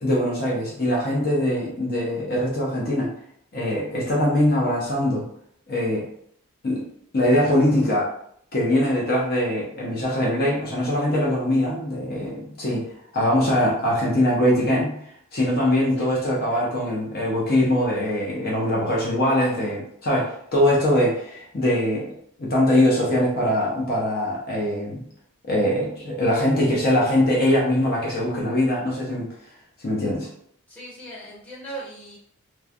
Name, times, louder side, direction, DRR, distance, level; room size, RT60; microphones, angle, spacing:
voice 1, 0.0-3.1 3.5-5.2 5.7-6.1 6.6-6.9 7.1-8.1 8.5-12.9 13.1-15.0 15.3-22.1 22.4-25.0 25.4-29.3 29.8-30.3, left 1 dB, 45° left, -4 dB, 0.6 m, -22 dB
voice 2, 30.7-32.2, right 2 dB, 5° left, -8 dB, 0.8 m, -39 dB
3.1 x 2.1 x 2.4 m, 0.67 s
head